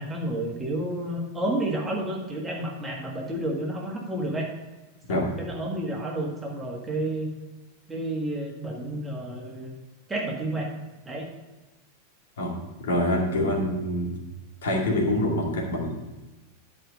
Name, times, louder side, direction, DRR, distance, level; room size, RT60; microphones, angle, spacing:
voice 1, 0.0-4.5 5.1-7.3 7.9-9.8 10.1-10.8 11.0-11.3, right 1 dB, 10° right, -1 dB, 1.7 m, -30 dB
voice 2, 12.8-14.2 14.6-15.9, left 1 dB, 60° left, -1 dB, 2.3 m, -25 dB
11.0 x 5.0 x 5.3 m, 1.1 s
figure-of-eight pair, 90°, 0 cm